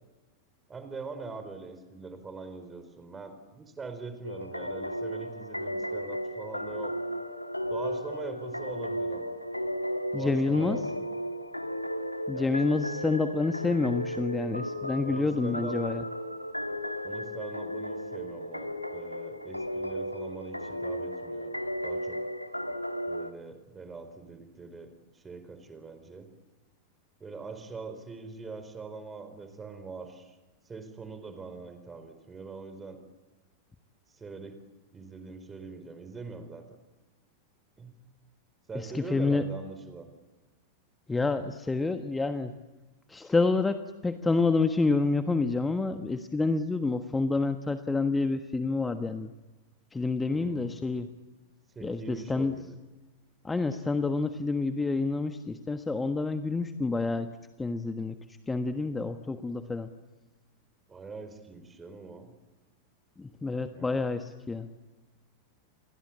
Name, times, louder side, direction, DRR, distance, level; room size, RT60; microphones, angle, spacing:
voice 1, 0.7-7.0 7.7-9.3 10.1-10.8 12.3-12.5 15.0-15.8 17.0-21.6 21.8-22.2 23.1-26.3 27.2-30.4 30.6-33.0 34.1-34.6 34.9-36.6 37.8-38.0 38.7-40.1 50.3-50.8 51.7-52.8 60.9-62.3 63.7-64.0, right 4 dB, 15° right, 9 dB, 4.5 m, -43 dB
sound 1, 4.2-23.3, equal, 90° left, 1.6 m, -35 dB
voice 2, 10.1-10.8 12.3-16.0 38.7-39.4 41.1-42.5 43.1-43.8 44.0-49.3 49.9-51.1 51.8-52.5 53.4-57.3 57.6-58.2 58.5-59.9 63.2-64.7, left 3 dB, 10° left, 9 dB, 1.4 m, -28 dB
29.0 x 22.5 x 8.7 m, 1.2 s
figure-of-eight pair, 90°, 0 cm